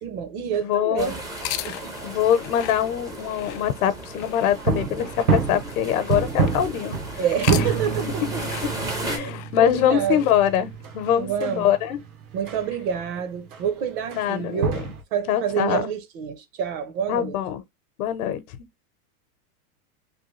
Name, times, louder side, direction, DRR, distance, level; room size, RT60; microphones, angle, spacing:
voice 1, 0.0-1.2 1.6-1.9 7.2-8.4 9.1-9.3 9.6-10.3 11.2-11.7 12.3-14.8 15.1-17.4, right 8 dB, 40° right, 0.7 m, -27 dB
voice 2, 0.6-1.2 2.0-7.0 7.5-7.6 9.0-12.0 14.2-14.8 15.3-15.9 17.1-17.6 18.0-18.4, left 10 dB, 70° left, 0.9 m, -23 dB
sound 1, 1.0-9.2, right 2 dB, 10° right, 0.4 m, -36 dB
sound 2, 1.3-6.7 7.2-11.2, left 14 dB, 55° left, 0.5 m, -38 dB
sound 3, 4.5-12.6 12.9-13.0 13.5-13.7 14.1-14.3 14.5-15.0, right 5 dB, 85° right, 1.2 m, -28 dB
3.4 x 2.3 x 3.1 m
supercardioid pair, 145°, 43 cm